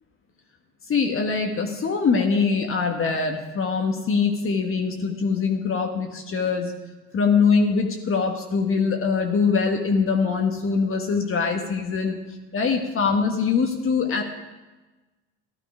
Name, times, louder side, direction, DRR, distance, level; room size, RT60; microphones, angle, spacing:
voice 1, 0.9-6.7 7.1-12.2 12.5-14.2, left 5 dB, 40° left, 3 dB, 1.5 m, -23 dB
13.0 x 12.0 x 5.0 m, 1.2 s
supercardioid pair, 80°, 34 cm